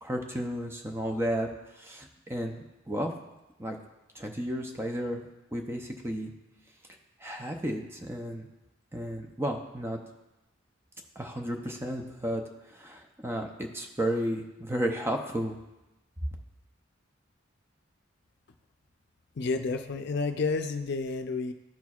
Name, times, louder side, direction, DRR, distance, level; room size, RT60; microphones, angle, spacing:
voice 1, 0.0-1.5 1.8-3.1 3.6-3.8 4.1-6.3 7.2-8.5 8.9-10.0 11.2-12.4 12.7-15.6, equal, 15° right, 3 dB, 0.5 m, -33 dB
voice 2, 19.4-21.5, left 4 dB, 60° left, 6 dB, 0.5 m, -30 dB
13.0 x 4.5 x 2.4 m, 1.0 s
head